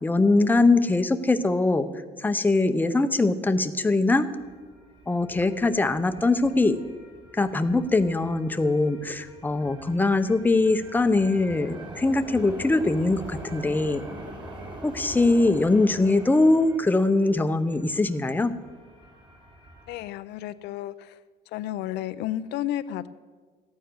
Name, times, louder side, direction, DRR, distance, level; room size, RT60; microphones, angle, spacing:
voice 1, 0.0-1.9 2.2-4.3 5.1-6.8 7.4-14.0 14.8-18.5, left 2 dB, 10° left, 8 dB, 0.7 m, -22 dB
sound 1, 4.1-20.0, right 1 dB, 30° right, 3.2 m, -44 dB
voice 2, 19.9-21.2 21.5-23.1, left 13 dB, 80° left, 13 dB, 0.5 m, -32 dB
14.0 x 9.3 x 6.2 m, 1.5 s
cardioid pair, 110°, 17 cm